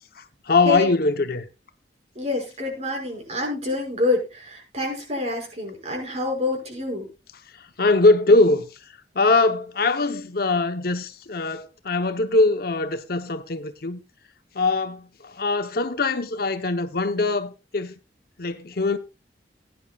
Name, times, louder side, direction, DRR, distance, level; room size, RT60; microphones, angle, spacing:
voice 1, 0.2-1.5 7.6-8.7 9.1-14.0 14.5-17.9 18.4-19.0, left 3 dB, 60° left, 0.9 m, -22 dB
voice 2, 2.2-7.1, left 2 dB, 40° right, 5.8 m, -27 dB
18.0 x 10.5 x 2.4 m
head